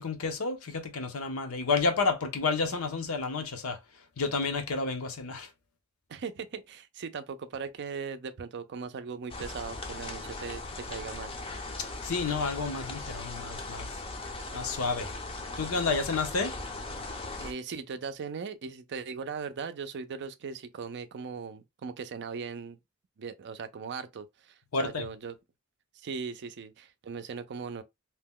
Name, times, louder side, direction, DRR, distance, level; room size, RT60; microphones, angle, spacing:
voice 1, 0.0-3.8 4.2-5.5 12.0-13.9 14.5-15.1 15.6-16.6 24.7-25.1, left 4 dB, 75° left, 0.7 m, -30 dB
voice 2, 6.1-11.3 17.4-22.8 23.2-25.4 25.9-27.8, right 5 dB, 55° right, 0.4 m, -39 dB
sound 1, 9.3-17.5, left 2 dB, 25° left, 0.5 m, -39 dB
2.8 x 2.2 x 3.6 m
head